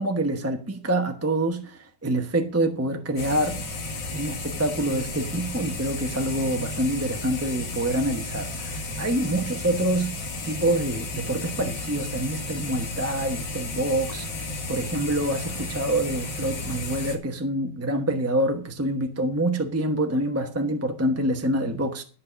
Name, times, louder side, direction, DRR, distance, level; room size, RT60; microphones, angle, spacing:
voice 1, 0.0-3.6 4.1-10.1 10.4-22.0, right 1 dB, 15° right, 0.5 m, -26 dB
sound 1, 3.2-17.2, left 2 dB, 65° left, 2.6 m, -33 dB
12.5 x 5.7 x 6.8 m
omnidirectional pair, 2.2 m